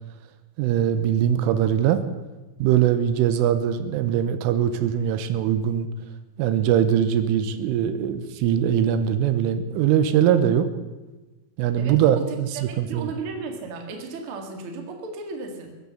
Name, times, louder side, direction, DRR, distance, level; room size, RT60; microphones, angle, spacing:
voice 1, 0.6-2.0 2.6-5.9 6.4-10.7 11.6-13.1, right 9 dB, 90° right, 11 dB, 3.5 m, -21 dB
voice 2, 11.8-15.8, right 4 dB, 50° right, 3 dB, 1.7 m, -35 dB
22.0 x 8.3 x 6.9 m, 1.1 s
omnidirectional pair, 5.7 m